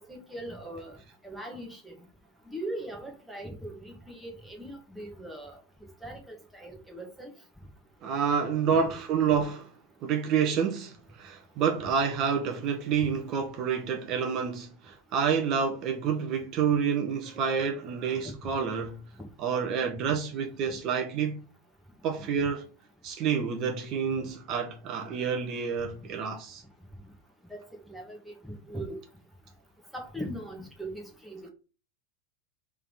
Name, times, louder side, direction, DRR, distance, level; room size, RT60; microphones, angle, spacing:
voice 1, 0.1-1.0 1.2-1.9 2.5-5.6 6.0-7.3 27.5-27.6 27.9-29.0 29.9-31.5, right 1 dB, ahead, 1.7 m, -40 dB
voice 2, 8.0-9.7 10.0-19.0 19.4-21.4 22.0-22.6 23.0-26.6, right 6 dB, 35° right, 1.1 m, -28 dB
5.5 x 3.7 x 5.5 m
supercardioid pair, 160°, 0 cm